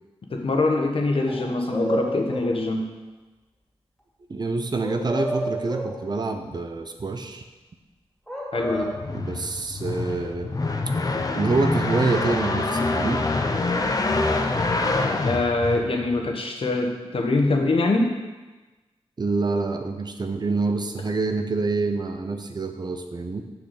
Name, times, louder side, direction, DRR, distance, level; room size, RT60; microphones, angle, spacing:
voice 1, 0.3-2.9 8.5-8.9 15.2-18.1, left 2 dB, 60° left, 2 dB, 1.2 m, -23 dB
sound 1, 1.3-2.6 4.8-6.0 8.3-9.0, right 1 dB, 5° left, 2.8 m, -30 dB
voice 2, 4.3-7.4 9.1-10.5 11.3-13.3 19.2-23.4, right 3 dB, 40° right, 6 dB, 0.8 m, -26 dB
sound 2, 8.7-16.3, left 3 dB, 35° left, 0.8 m, -26 dB
6.3 x 6.0 x 6.8 m, 1.2 s
wide cardioid pair, 90°, 10 cm